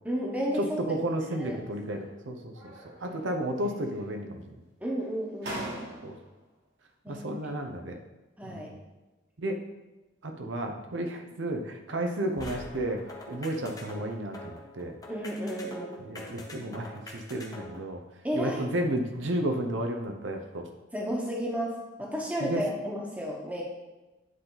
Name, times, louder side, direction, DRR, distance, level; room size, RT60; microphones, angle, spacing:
voice 1, 0.0-0.8 1.4-1.6 4.8-5.8 7.0-7.3 8.4-8.7 15.1-16.0 18.2-18.6 20.9-21.7 22.0-23.6, equal, 10° right, -2 dB, 1.1 m, -32 dB
voice 2, 0.6-2.7 3.0-4.6 6.0-6.2 7.1-8.0 8.4-8.7 9.4-9.6 10.2-15.0 16.0-18.0 18.3-20.7 22.4-22.6, right 1 dB, 85° right, 4 dB, 0.8 m, -32 dB
sound 1, 1.6-2.2 2.5-3.3 3.6-4.4 5.0-5.1 5.4-6.4, right 1 dB, 65° right, 1.9 m, -42 dB
sound 2, 12.4-17.8, left 1 dB, 20° left, 0.8 m, -44 dB
9.4 x 4.0 x 4.0 m, 1.1 s
head